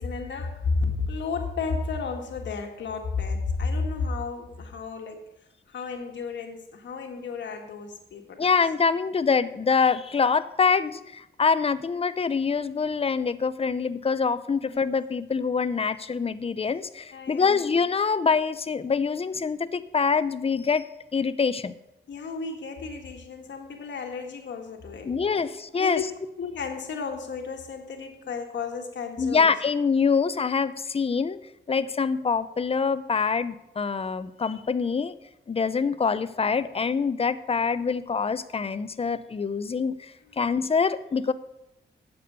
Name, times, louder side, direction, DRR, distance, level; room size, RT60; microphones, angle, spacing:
voice 1, 0.0-5.2 5.7-8.5 14.6-14.9 17.1-17.8 22.1-25.1 25.7-26.1 26.4-29.5 40.2-40.4, left 4 dB, 90° left, 3 dB, 1.5 m, -32 dB
voice 2, 8.4-20.9 21.1-21.7 25.1-26.0 29.2-31.4 31.7-35.2 35.5-41.3, left 5 dB, 30° left, 13 dB, 0.6 m, -25 dB
8.5 x 6.9 x 6.6 m, 0.86 s
cardioid pair, 85°, 18 cm